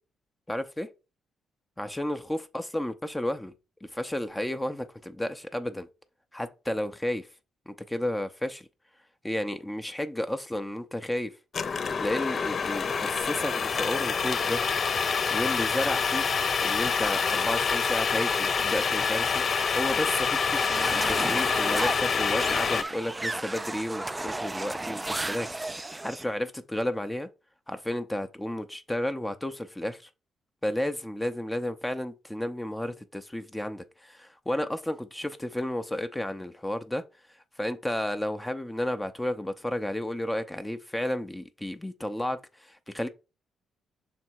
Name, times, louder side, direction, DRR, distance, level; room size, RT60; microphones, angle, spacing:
voice 1, 0.5-0.9 1.8-3.5 3.8-5.9 6.3-7.3 7.7-8.6 9.2-11.3 12.0-16.3 16.6-19.4 19.8-20.6 20.9-27.3 27.7-30.0 30.6-37.0 37.6-43.1, left 1 dB, 10° left, 0.7 m, -32 dB
sound 1, 11.5-22.8, left 5 dB, 45° left, 0.4 m, -26 dB
sound 2, 20.5-26.3, right 2 dB, 15° right, 0.3 m, -34 dB
6.3 x 3.5 x 4.5 m
cardioid pair, 90°, 0 cm